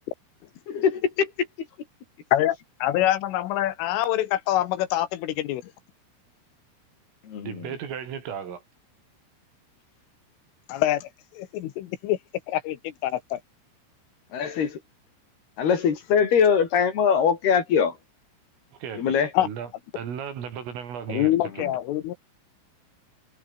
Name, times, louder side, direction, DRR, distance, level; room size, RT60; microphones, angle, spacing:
voice 1, 0.7-1.5 7.2-7.7 14.3-14.8 15.6-18.0 19.0-19.3, left 7 dB, 55° left, 4.9 m, -22 dB
voice 2, 2.3-5.6 10.7-12.2 12.5-13.4 19.3-19.5 21.1-22.2, left 13 dB, 75° left, 3.9 m, -25 dB
voice 3, 7.4-8.6 18.8-19.7 20.0-21.8, right 8 dB, 75° right, 6.8 m, -35 dB
omnidirectional pair, 5.9 m